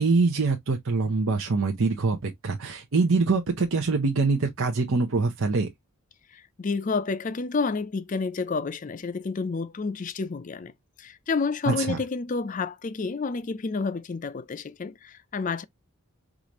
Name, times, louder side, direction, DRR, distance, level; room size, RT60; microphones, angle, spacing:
voice 1, 0.0-5.7 11.7-12.0, right 3 dB, 70° right, 0.7 m, -24 dB
voice 2, 6.3-10.7 11.0-15.6, left 4 dB, 35° left, 0.4 m, -30 dB
4.8 x 2.6 x 2.9 m
head